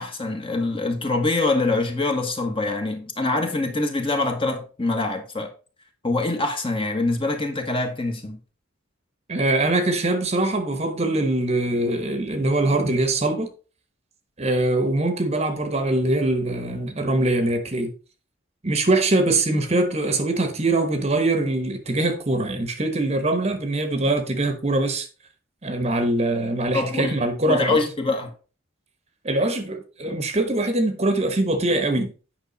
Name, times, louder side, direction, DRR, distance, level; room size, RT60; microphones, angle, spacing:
voice 1, 0.0-5.5 6.0-8.4 26.7-28.3, left 2 dB, 25° left, 1.4 m, -24 dB
voice 2, 9.3-13.5 14.4-17.9 18.6-25.1 25.6-27.8 29.2-32.1, right 2 dB, 30° right, 1.1 m, -23 dB
9.4 x 5.8 x 4.1 m
head